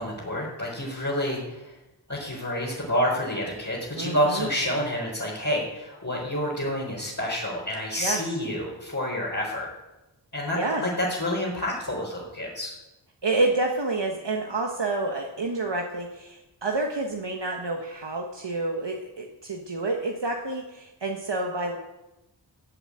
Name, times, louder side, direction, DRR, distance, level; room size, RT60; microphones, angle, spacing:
voice 1, 0.0-1.8 2.1-9.7 10.3-12.7, equal, 40° left, -6 dB, 4.4 m, -28 dB
voice 2, 4.0-4.5 8.0-8.2 10.5-10.8 13.2-21.8, right 2 dB, 65° right, 1 dB, 1.5 m, -28 dB
14.5 x 8.1 x 8.6 m, 0.99 s
wide cardioid pair, 60°, 46 cm